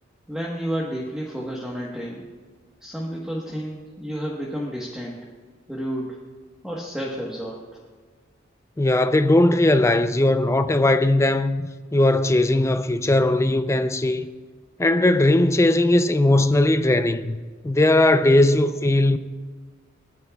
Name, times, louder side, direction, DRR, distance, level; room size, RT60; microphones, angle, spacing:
voice 1, 0.3-2.2 2.8-5.2 5.7-6.2 6.6-7.6, equal, 5° right, 1.2 m, -31 dB
voice 2, 8.8-14.3 14.8-17.4 17.6-19.2, left 1 dB, 15° left, 0.5 m, -19 dB
28.5 x 9.4 x 2.3 m
head